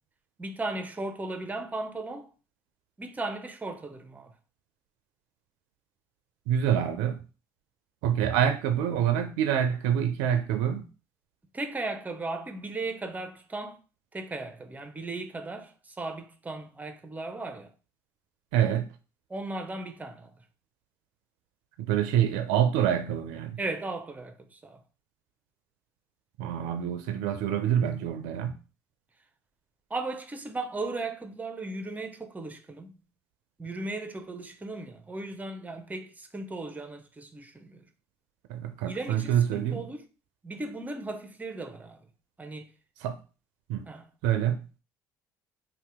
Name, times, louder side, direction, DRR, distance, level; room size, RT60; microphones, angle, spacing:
voice 1, 0.4-2.3 3.0-4.3 11.5-13.8 14.1-17.7 19.3-20.4 23.6-24.8 26.5-26.6 27.8-28.0 29.9-33.0 33.6-37.9 38.9-40.1 40.4-42.0 42.4-42.7 43.9-44.1, right 2 dB, 20° right, 0.6 m, -36 dB
voice 2, 6.5-7.2 8.0-10.9 18.5-18.9 21.8-23.6 26.4-28.6 38.5-39.8 43.0-43.2 43.7-43.9 44.2-44.6, right 9 dB, 75° right, 0.4 m, -26 dB
2.7 x 2.2 x 3.4 m
hypercardioid pair, 65°, 9 cm